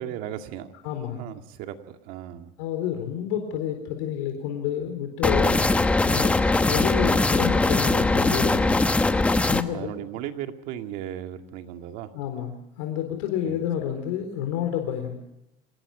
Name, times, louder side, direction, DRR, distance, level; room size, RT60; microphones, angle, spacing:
voice 1, 0.0-0.7 1.1-2.5 9.7-12.1 13.4-13.6, right 11 dB, 65° right, 6 dB, 2.2 m, -36 dB
voice 2, 0.8-1.3 2.6-5.7 6.0-6.4 6.7-8.8 9.5-9.9 12.1-15.2, left 9 dB, 85° left, 4 dB, 4.1 m, -29 dB
sound 1, 5.2-9.6, left 2 dB, 10° left, 1.0 m, -21 dB
27.0 x 19.5 x 5.0 m, 0.87 s
cardioid pair, 145°, 16 cm